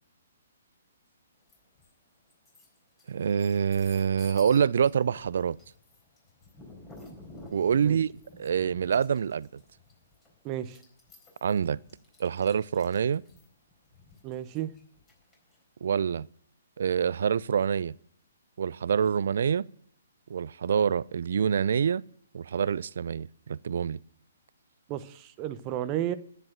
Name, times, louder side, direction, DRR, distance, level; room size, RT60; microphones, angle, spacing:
sound 1, 1.5-1.9 2.3-15.6, left 2 dB, 15° left, 4.1 m, -52 dB
voice 1, 3.1-5.6 7.5-8.1 8.4-9.5 11.4-11.8 12.2-13.2 15.8-16.3 16.8-17.9 18.6-19.7 20.3-22.0 22.3-24.0, right 7 dB, 60° right, 0.4 m, -26 dB
voice 2, 10.4-10.8 14.2-14.7 24.9-26.1, right 12 dB, 30° right, 0.8 m, -33 dB
10.5 x 9.7 x 6.3 m
figure-of-eight pair, 130°, 0 cm